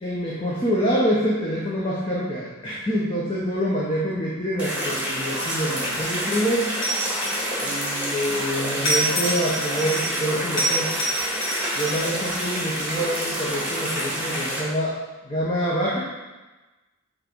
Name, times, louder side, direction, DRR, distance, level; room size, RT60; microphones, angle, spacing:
voice 1, 0.0-6.7 7.6-10.9 11.8-14.9 15.2-16.0, equal, 25° left, -6 dB, 0.9 m, -26 dB
sound 1, 4.6-14.6, equal, 5° right, 2.1 m, -28 dB
sound 2, 5.3-5.9 6.8-8.1 8.8-10.2 10.6-12.7, equal, 70° left, 2.0 m, -27 dB
7.5 x 3.8 x 4.6 m, 1.2 s
head